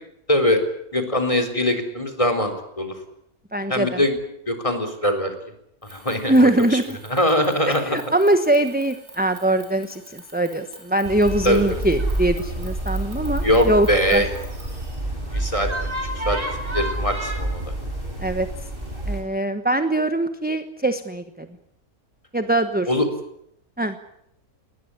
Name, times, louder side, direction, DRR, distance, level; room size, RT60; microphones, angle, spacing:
voice 1, 0.3-0.6 0.9-2.9 3.7-4.1 4.5-5.3 5.9-6.8 7.1-8.0 11.4-11.8 13.4-14.3 15.3-15.9 16.3-16.4 16.7-17.7 22.9-23.1, left 1 dB, 20° left, 5 dB, 3.9 m, -22 dB
voice 2, 3.5-4.0 6.3-7.0 7.7-14.2 18.2-18.5 19.1-21.5 22.3-22.9 23.8-23.9, right 1 dB, 5° right, 8 dB, 1.0 m, -22 dB
sound 1, 5.8-15.0, right 2 dB, 65° right, 7.8 m, -46 dB
sound 2, 11.0-19.2, right 1 dB, 35° right, 6.4 m, -28 dB
20.5 x 20.0 x 10.0 m, 0.76 s
omnidirectional pair, 1.5 m